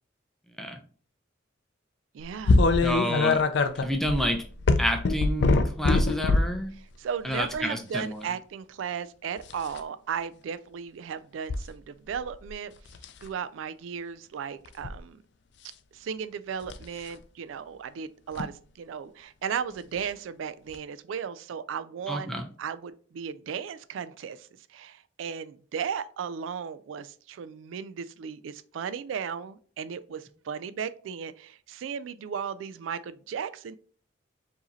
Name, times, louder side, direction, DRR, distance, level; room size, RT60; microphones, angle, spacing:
voice 1, 2.1-2.6 6.8-12.7 13.2-15.2 15.9-33.8, right 7 dB, 80° right, 0.3 m, -36 dB
sound 1, 2.5-6.6 7.3-7.6 9.4-9.8 11.5-11.6 12.1-12.5 12.9-13.2 14.6-15.0 16.6-16.8 18.3-18.5 20.0-20.1 20.7-20.8, left 3 dB, 60° left, 0.4 m, -23 dB
voice 2, 2.8-3.4 3.8-4.4 4.8-6.7 7.2-8.2 22.1-22.5, equal, ahead, 0.5 m, -29 dB
4.7 x 2.7 x 3.0 m
head